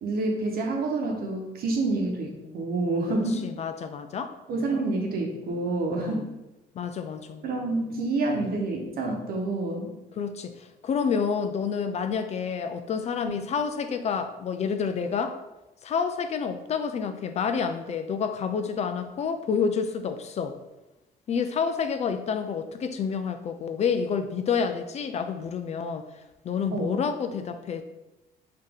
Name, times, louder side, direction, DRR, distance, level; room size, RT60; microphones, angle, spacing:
voice 1, 0.0-3.5 4.5-6.2 7.4-9.9 13.3-13.4 26.7-27.0, right 2 dB, 60° right, 2 dB, 1.0 m, -28 dB
voice 2, 3.4-4.3 6.0-6.3 6.8-7.4 10.2-15.4 15.8-20.6 21.3-26.0 26.4-27.8, left 6 dB, 40° left, 8 dB, 0.4 m, -29 dB
5.0 x 2.8 x 3.6 m, 1.0 s
cardioid pair, 110°, 17 cm